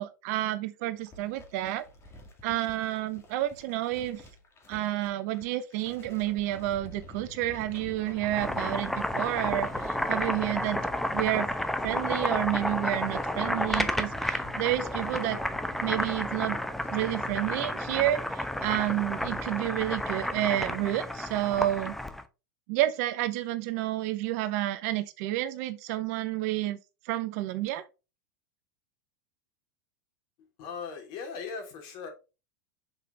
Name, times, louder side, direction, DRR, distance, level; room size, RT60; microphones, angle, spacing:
voice 1, 0.0-1.8 2.4-4.2 4.7-10.9 11.1-11.5 11.8-15.4 15.8-16.6 16.9-22.0 22.7-26.8 27.0-27.8, right 14 dB, 60° right, 0.9 m, -30 dB
sound 1, 0.9-19.4, left 1 dB, 25° left, 2.3 m, -50 dB
Boiling, 8.2-22.2, left 1 dB, 5° left, 0.9 m, -31 dB
voice 2, 30.6-32.1, left 5 dB, 50° left, 3.1 m, -38 dB
6.6 x 5.0 x 3.9 m
hypercardioid pair, 100°, 10 cm